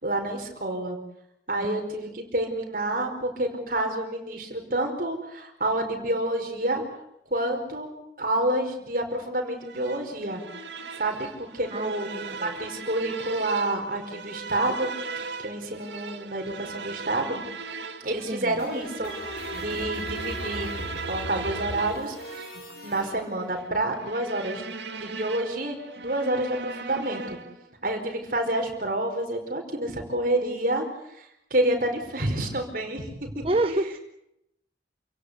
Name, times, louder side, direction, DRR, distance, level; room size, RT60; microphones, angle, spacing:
voice 1, 0.0-1.0 1.5-6.8 7.3-7.9 8.2-10.4 11.0-14.9 15.4-17.4 18.0-19.1 19.5-20.7 21.1-22.1 22.8-24.6 25.0-27.4 27.8-30.8 31.2-33.5, right 1 dB, 50° right, 4.9 m, -28 dB
voice 2, 1.5-1.9 11.7-12.5 18.3-18.6 33.4-34.0, right 2 dB, 30° right, 0.8 m, -29 dB
sound 1, 9.6-27.7, right 4 dB, 80° right, 2.0 m, -38 dB
sound 2, 18.1-23.1, left 1 dB, 55° left, 4.9 m, -38 dB
29.0 x 17.0 x 8.3 m
head